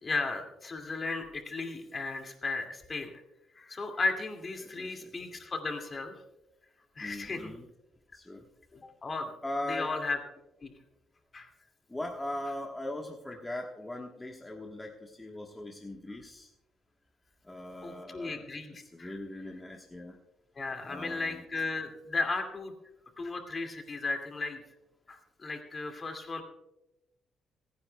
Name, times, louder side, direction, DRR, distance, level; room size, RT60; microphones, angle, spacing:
voice 1, 0.0-3.2 3.6-6.1 7.0-7.6 8.7-9.3 9.7-10.2 10.6-10.7 11.3-11.5 17.8-19.2 20.6-22.7 23.2-24.6 25.1-26.4, left 3 dB, 35° left, 4 dB, 2.3 m, -35 dB
voice 2, 4.6-5.1 7.0-7.6 8.1-8.5 9.4-9.9 11.9-16.5 17.4-18.5 18.9-20.2 20.9-21.4, left 1 dB, 15° left, 0 dB, 1.3 m, -40 dB
27.0 x 9.7 x 2.3 m, 0.94 s
cardioid pair, 90°, 0 cm